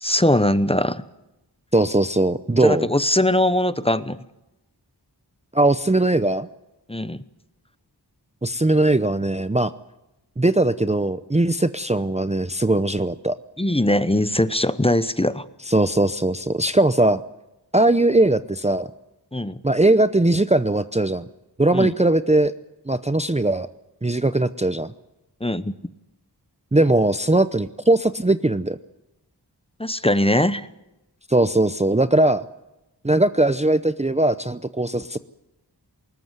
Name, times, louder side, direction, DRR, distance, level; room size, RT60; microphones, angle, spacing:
voice 1, 0.0-1.0 2.6-4.2 6.9-7.2 13.6-15.4 19.3-19.6 21.7-21.9 25.4-25.7 29.8-30.7, left 1 dB, 15° left, 14 dB, 0.9 m, -21 dB
voice 2, 1.7-2.9 5.5-6.5 8.4-9.7 10.4-13.4 15.7-17.2 17.7-18.9 19.6-21.3 21.6-22.5 22.9-23.7 24.0-24.9 26.7-28.8 31.3-32.4 33.0-35.2, right 2 dB, 15° right, 12 dB, 0.7 m, -20 dB
21.0 x 19.0 x 8.1 m, 0.93 s
wide cardioid pair, 60°, 41 cm